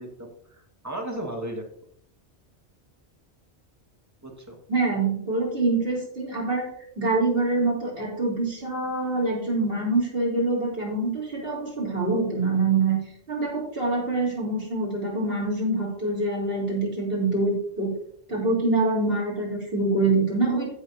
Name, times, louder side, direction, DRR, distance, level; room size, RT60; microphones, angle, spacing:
voice 1, 0.0-1.7 4.2-4.6, right 1 dB, 15° right, 1 dB, 1.8 m, -35 dB
voice 2, 4.7-6.7 7.0-13.0 13.3-17.9 18.3-20.7, right 3 dB, 55° right, -4 dB, 3.7 m, -25 dB
15.5 x 6.4 x 2.7 m, 0.65 s
omnidirectional pair, 1.2 m